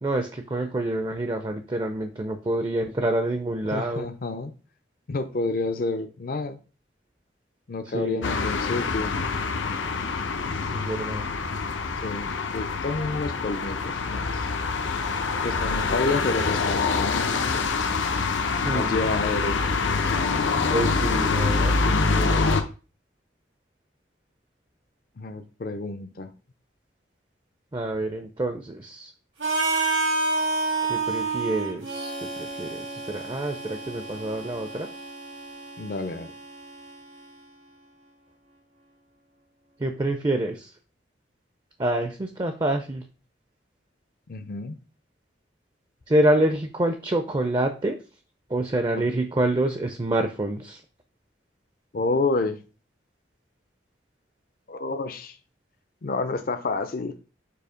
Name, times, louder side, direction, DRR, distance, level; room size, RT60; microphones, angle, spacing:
voice 1, 0.0-4.1 7.9-8.3 10.7-11.3 18.6-19.0 20.7-22.5 27.7-29.1 30.8-34.9 39.8-40.7 41.8-43.0 46.1-48.0 48.5-50.8, right 1 dB, 25° right, 7 dB, 0.5 m, -27 dB
voice 2, 3.7-4.5 5.1-6.6 7.7-9.2 12.0-14.5 15.4-17.3 18.7-19.6 25.2-26.3 35.8-36.3 44.3-44.7 49.0-49.1 51.9-52.6 54.7-55.4 56.0-57.1, left 3 dB, 50° left, 8 dB, 0.5 m, -29 dB
sound 1, 8.2-22.6, left 4 dB, 85° left, 0.7 m, -25 dB
Harmonica, 29.4-37.3, right 3 dB, 90° right, 2.5 m, -30 dB
6.8 x 2.8 x 5.0 m, 0.34 s
head